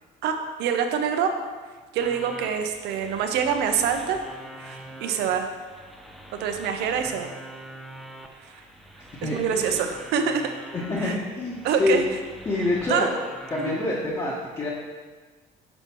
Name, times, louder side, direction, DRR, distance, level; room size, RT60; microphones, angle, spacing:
voice 1, 0.2-1.3 1.9-4.2 4.6-5.5 6.4-7.3 8.4-8.5 9.2-10.5 11.0-11.2 11.6-12.0 12.9-13.1 13.6-13.8, right 7 dB, 85° right, 6 dB, 0.7 m, -25 dB
sound 1, 2.0-13.9, right 1 dB, ahead, 0.6 m, -44 dB
voice 2, 9.2-9.7 10.7-12.0 12.4-13.1 13.5-14.7, left 2 dB, 25° left, -7 dB, 1.2 m, -26 dB
6.4 x 4.6 x 4.5 m, 1.4 s
cardioid pair, 110°, 17 cm